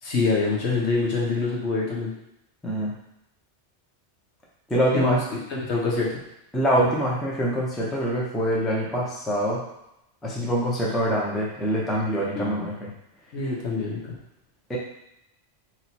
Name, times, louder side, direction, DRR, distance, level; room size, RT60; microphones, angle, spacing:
voice 1, 0.0-2.1 4.9-5.2 5.5-6.1 12.3-12.5 13.3-14.2, left 3 dB, 70° left, -3 dB, 1.2 m, -25 dB
voice 2, 4.7-5.2 6.5-9.6 10.2-12.9 14.7-14.8, equal, ahead, -4 dB, 0.5 m, -24 dB
3.0 x 3.0 x 4.2 m, 0.84 s
omnidirectional pair, 1.2 m